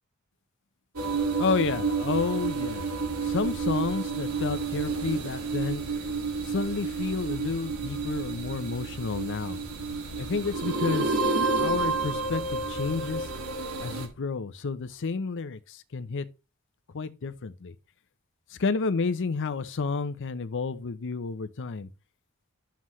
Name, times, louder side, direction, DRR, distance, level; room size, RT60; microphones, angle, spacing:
sound 1, 1.0-14.1, right 4 dB, 85° right, 2.1 m, -30 dB
voice 1, 1.4-2.9 3.2-5.8 6.4-9.6 10.2-11.2 11.6-13.3 13.8-16.3 16.9-17.7 18.6-21.9, left 4 dB, 60° left, 0.6 m, -30 dB
11.5 x 7.5 x 3.1 m
head